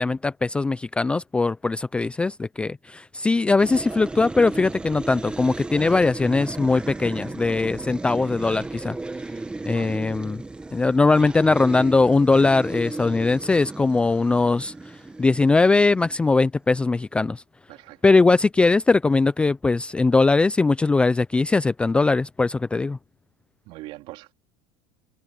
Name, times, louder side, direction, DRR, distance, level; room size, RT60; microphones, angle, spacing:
voice 1, 0.0-9.0 9.7-10.4 10.7-14.7 15.2-17.4 18.0-23.0, left 3 dB, 10° left, 0.4 m, -20 dB
sound 1, 3.6-16.5, right 2 dB, 10° right, 1.6 m, -35 dB
voice 2, 9.7-10.0 17.7-18.0 23.7-24.3, right 19 dB, 55° right, 4.0 m, -41 dB
cardioid pair, 150°, 11 cm